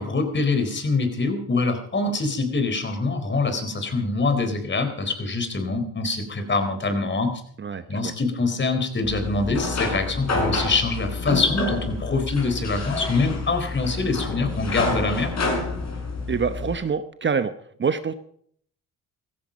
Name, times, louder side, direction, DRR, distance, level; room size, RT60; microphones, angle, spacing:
voice 1, 0.0-7.3 7.9-15.3, left 3 dB, 30° left, 7 dB, 4.0 m, -24 dB
voice 2, 7.6-8.1 16.3-17.5 17.8-18.1, right 6 dB, 35° right, 11 dB, 0.9 m, -25 dB
sound 1, 9.0-16.8, left 3 dB, 50° left, 6.9 m, -28 dB
16.5 x 14.5 x 5.3 m, 0.63 s
supercardioid pair, 80°, 34 cm